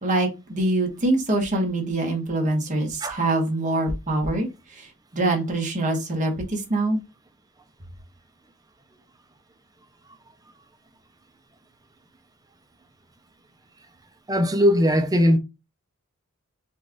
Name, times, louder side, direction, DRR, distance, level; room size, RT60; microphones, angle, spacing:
voice 1, 0.0-4.9 5.1-7.0, right 2 dB, 35° right, 1.1 m, -24 dB
voice 2, 14.3-15.4, equal, 15° right, 0.5 m, -19 dB
4.1 x 2.4 x 3.5 m
head